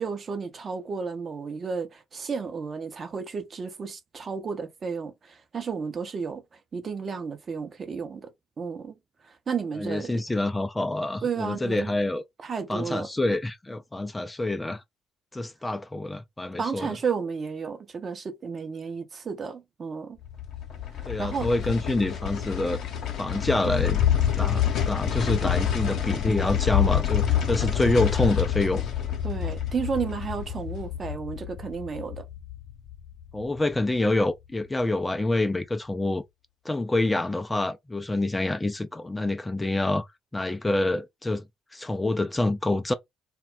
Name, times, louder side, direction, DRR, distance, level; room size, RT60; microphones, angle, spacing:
voice 1, 0.0-8.3 8.6-9.0 9.2-10.2 11.2-11.9 12.4-13.1 16.6-20.2 21.2-21.5 29.2-32.3, right 5 dB, 40° right, 0.6 m, -32 dB
voice 2, 9.8-12.2 12.7-14.8 15.3-17.0 21.1-22.8 23.2-24.0 24.4-28.8 33.3-36.2 36.6-40.1 40.3-41.4 41.7-42.9, left 2 dB, 15° left, 0.3 m, -27 dB
sound 1, 20.2-33.4 33.7-33.8, left 10 dB, 55° left, 0.7 m, -27 dB
2.2 x 2.0 x 3.7 m
figure-of-eight pair, 45°, 0 cm